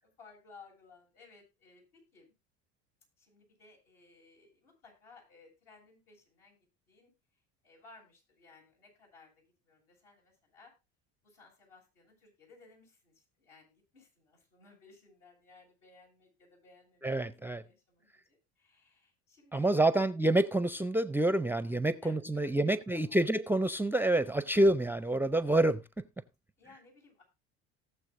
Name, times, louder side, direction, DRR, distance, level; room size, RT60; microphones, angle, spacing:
voice 1, 0.0-2.3 3.2-6.6 6.9-7.1 7.6-10.7 11.2-17.1 17.5-20.1 22.0-23.2 26.6-27.2, left 3 dB, 75° left, 7.6 m, -59 dB
voice 2, 17.0-17.6 19.5-25.8, right 1 dB, 5° right, 0.5 m, -27 dB
19.0 x 7.0 x 2.6 m
hypercardioid pair, 80°, 32 cm